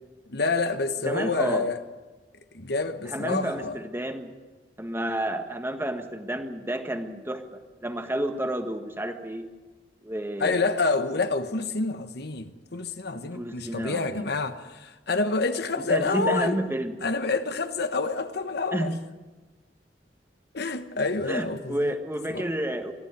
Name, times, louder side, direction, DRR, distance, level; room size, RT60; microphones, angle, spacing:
voice 1, 0.3-1.8 2.5-3.8 10.4-16.6 17.0-18.9 20.5-22.0 22.3-22.5, left 3 dB, 65° left, 1.2 m, -28 dB
voice 2, 1.0-1.7 3.1-4.3 4.8-9.5 10.0-10.6 13.2-14.3 15.9-17.0 18.7-19.0 21.3-22.9, right 1 dB, 15° right, 1.5 m, -30 dB
23.5 x 14.5 x 9.6 m
head